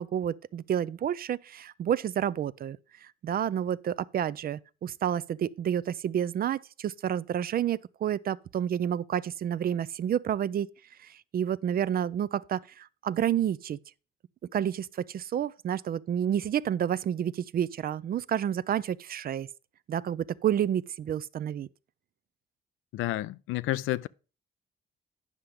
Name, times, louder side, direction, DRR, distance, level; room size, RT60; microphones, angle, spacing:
voice 1, 0.0-2.8 3.0-10.7 11.0-13.8 14.5-19.5 19.9-21.7, right 9 dB, 50° right, 0.4 m, -30 dB
voice 2, 22.9-24.1, left 16 dB, 85° left, 0.4 m, -30 dB
9.7 x 5.8 x 4.9 m
cardioid pair, 90°, 20 cm